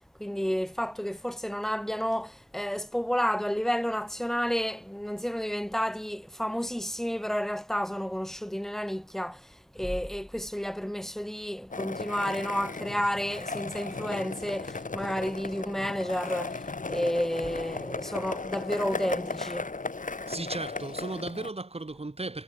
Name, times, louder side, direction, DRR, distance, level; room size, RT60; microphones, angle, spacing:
voice 1, 0.2-9.5 9.7-19.7, equal, ahead, 3.1 m, -31 dB
Skateboard, 11.7-21.5, left 3 dB, 25° left, 6.8 m, -36 dB
voice 2, 20.3-22.4, right 2 dB, 20° right, 7.4 m, -36 dB
hypercardioid pair, 50°, 33 cm